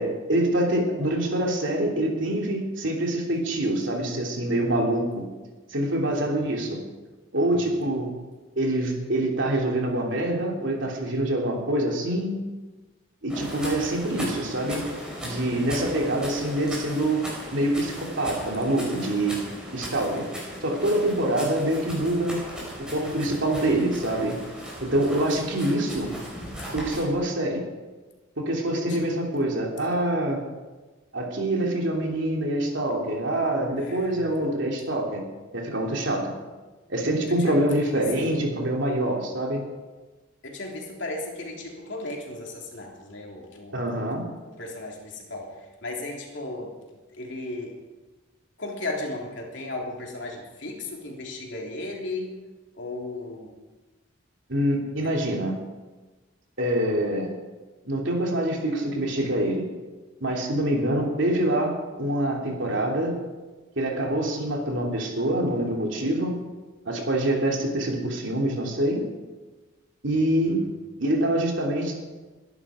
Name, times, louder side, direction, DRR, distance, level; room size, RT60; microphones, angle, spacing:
voice 1, 0.0-5.2 5.7-6.8 7.3-8.1 8.6-12.4 13.2-14.8 15.2-17.2 17.5-19.4 19.7-20.3 20.6-22.4 22.8-24.4 24.8-26.1 26.7-27.6 28.4-30.4 31.1-35.2 35.5-36.3 36.9-39.6 43.7-44.2 54.5-55.6 56.6-57.3 57.8-59.6 60.2-63.1 63.8-66.3 66.8-69.0 70.0-70.6 71.0-72.0, right 1 dB, 60° right, 0 dB, 3.1 m, -25 dB
voice 2, 7.5-7.8 28.7-29.0 33.8-34.3 37.3-38.4 40.4-44.0 44.6-46.7 47.1-47.8 48.6-52.3 52.7-53.5 70.4-70.7, left 2 dB, 60° left, 0 dB, 3.3 m, -36 dB
sound 1, 13.3-27.0, equal, 5° right, 5.4 m, -37 dB
22.0 x 11.0 x 5.1 m, 1.2 s
head